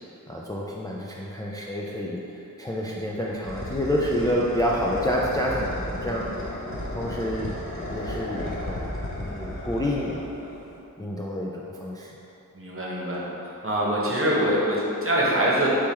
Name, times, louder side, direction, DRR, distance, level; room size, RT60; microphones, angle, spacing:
voice 1, 0.3-6.3 6.9-7.6 7.9-8.8 9.2-10.2 11.0-12.2, equal, 10° left, -4 dB, 0.3 m, -28 dB
sound 1, 2.8-10.8, left 1 dB, 40° left, 0.8 m, -34 dB
voice 2, 12.5-15.7, right 1 dB, 40° right, -6 dB, 0.9 m, -24 dB
3.5 x 3.2 x 4.3 m, 3.0 s
wide cardioid pair, 50°, 33 cm